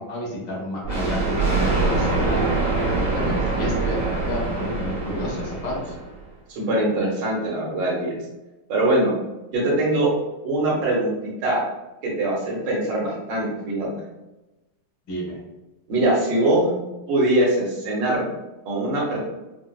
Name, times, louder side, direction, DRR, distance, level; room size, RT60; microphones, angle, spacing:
voice 1, 0.0-2.4 2.8-5.8 15.1-15.4, left 1 dB, 90° left, -4 dB, 1.9 m, -30 dB
Thunder, 0.8-6.2, right 3 dB, 50° right, 1.5 m, -24 dB
voice 2, 6.5-8.1 8.7-9.1 9.5-10.1 10.4-11.6 12.0-13.9 15.9-16.7 17.1-18.2 18.6-19.2, right 1 dB, 75° right, -3 dB, 1.6 m, -22 dB
4.6 x 2.0 x 2.3 m, 1.0 s
omnidirectional pair, 2.0 m